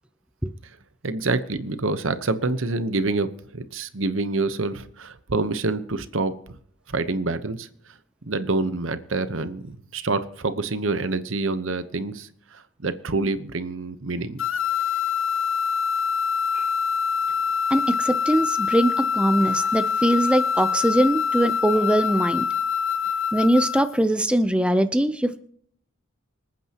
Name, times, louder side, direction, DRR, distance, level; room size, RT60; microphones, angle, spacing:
voice 1, 1.0-6.6 6.9-7.7 8.2-14.4, right 3 dB, 80° right, 12 dB, 1.0 m, -27 dB
sound 1, 14.4-24.0, left 6 dB, 80° left, 0.7 m, -25 dB
voice 2, 17.7-22.5 23.3-25.4, right 1 dB, 5° right, 9 dB, 0.6 m, -21 dB
26.0 x 9.1 x 2.9 m, 0.63 s
head